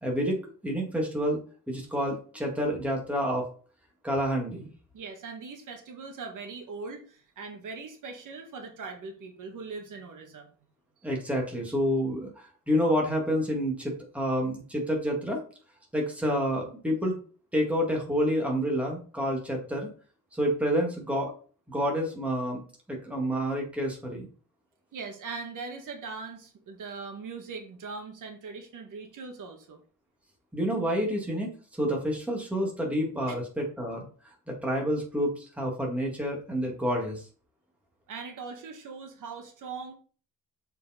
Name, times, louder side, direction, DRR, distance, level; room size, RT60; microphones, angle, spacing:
voice 1, 0.0-3.5 4.0-4.7 11.0-15.4 15.9-17.2 17.5-19.9 20.3-21.3 21.7-22.6 22.9-24.3 30.5-34.0 34.5-37.3, equal, 5° right, -1 dB, 1.9 m, -29 dB
voice 2, 4.9-10.5 11.0-11.1 24.9-29.8 38.1-39.9, right 4 dB, 65° right, 3 dB, 1.5 m, -40 dB
7.0 x 4.5 x 4.2 m, 0.41 s
cardioid pair, 150°, 34 cm